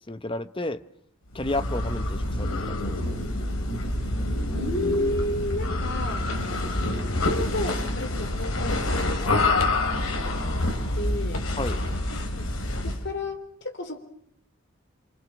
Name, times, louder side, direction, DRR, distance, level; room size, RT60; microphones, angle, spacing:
voice 1, 0.1-0.8 1.3-3.2 11.6-11.8, left 2 dB, 25° left, 0.9 m, -32 dB
sound 1, 1.3-13.1, left 2 dB, 80° left, 3.7 m, -27 dB
voice 2, 4.5-6.6 7.1-11.5 12.4-12.5 12.8-14.0, left 1 dB, 55° left, 3.9 m, -32 dB
28.5 x 26.0 x 6.2 m
head